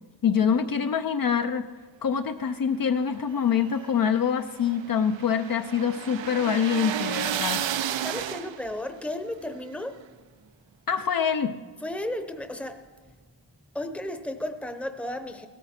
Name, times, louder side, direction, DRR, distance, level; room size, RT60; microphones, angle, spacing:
voice 1, 0.2-1.7 2.0-7.7 10.9-11.5, left 7 dB, 50° left, 7 dB, 0.6 m, -25 dB
sound 1, 3.3-8.8, right 10 dB, 90° right, 0.7 m, -32 dB
voice 2, 8.0-10.0 11.8-12.8 13.7-15.5, left 1 dB, 5° left, 8 dB, 0.8 m, -34 dB
17.5 x 13.5 x 4.4 m, 1.4 s
wide cardioid pair, 135°, 43 cm